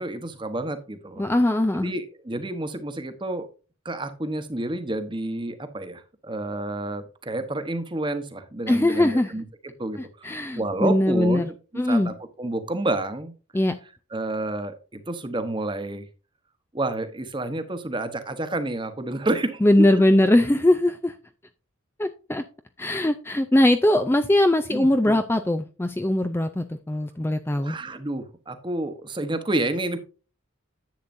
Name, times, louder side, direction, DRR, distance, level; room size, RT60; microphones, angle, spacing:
voice 1, 0.0-1.2 1.8-3.5 3.8-9.4 9.8-11.5 11.9-13.3 14.1-16.0 16.7-19.6 24.7-25.2 27.6-30.0, right 2 dB, 25° right, 9 dB, 1.0 m, -29 dB
voice 2, 1.2-1.9 8.7-9.3 10.0-11.5 11.8-12.1 13.5-13.7 19.6-21.1 22.0-22.4 22.8-27.8, left 1 dB, 10° left, 8 dB, 0.4 m, -21 dB
10.5 x 8.2 x 2.6 m, 0.34 s
head